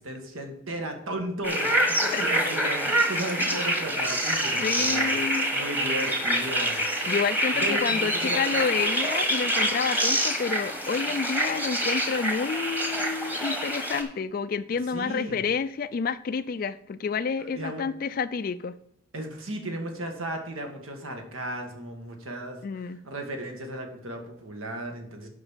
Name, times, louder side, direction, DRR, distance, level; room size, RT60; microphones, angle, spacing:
voice 1, 0.0-6.8 7.5-8.4 14.9-15.4 17.4-17.8 19.1-22.6 22.8-25.3, right 1 dB, 80° right, 4 dB, 1.7 m, -35 dB
sound 1, 1.4-14.0, right 1 dB, 10° right, 1.2 m, -26 dB
voice 2, 2.1-2.6 4.6-5.5 7.1-18.7 22.6-23.0, left 5 dB, 45° left, 12 dB, 0.3 m, -29 dB
7.9 x 5.3 x 7.2 m, 0.74 s
head